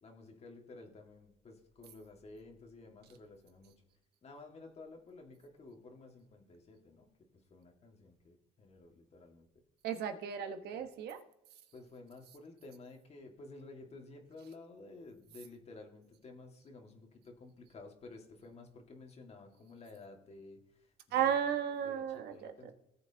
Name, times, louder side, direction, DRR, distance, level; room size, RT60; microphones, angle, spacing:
voice 1, 0.0-3.7 4.2-7.1 7.5-9.5 10.7-10.9 11.7-20.6 21.2-21.3 21.8-22.0 22.3-22.7, left 3 dB, 40° left, 2.0 m, -53 dB
voice 2, 9.8-11.2 21.1-22.7, right 9 dB, 75° right, 1.3 m, -34 dB
18.0 x 8.0 x 2.9 m
cardioid pair, 110°, 17 cm